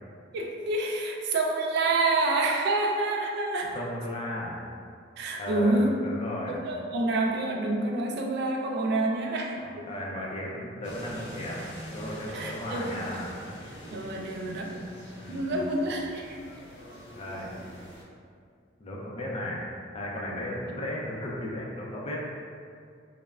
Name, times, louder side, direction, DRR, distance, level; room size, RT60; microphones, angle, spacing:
voice 1, 0.3-3.8 5.2-6.0 6.5-9.9 12.3-13.0 13.9-14.8 15.3-16.4, right 2 dB, 60° right, 1 dB, 0.3 m, -28 dB
voice 2, 3.7-4.6 5.4-6.5 9.6-11.6 11.9-13.3 15.1-15.7 17.1-17.5 18.8-22.3, left 1 dB, 30° left, -4 dB, 0.4 m, -35 dB
sound 1, 10.8-18.0, equal, 70° left, 0.7 m, -44 dB
3.2 x 2.0 x 2.3 m, 2.2 s
head